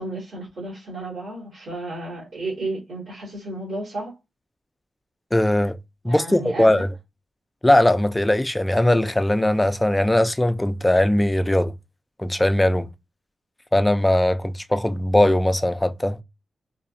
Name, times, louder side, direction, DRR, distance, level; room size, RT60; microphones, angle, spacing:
voice 1, 0.0-4.2 6.0-6.8, right 2 dB, 85° right, 2.1 m, -32 dB
voice 2, 5.3-5.8 6.0-6.9 7.6-11.7 12.2-12.9 13.7-16.2, left 1 dB, 15° left, 0.4 m, -19 dB
4.1 x 2.7 x 2.6 m
wide cardioid pair, 90°, 0 cm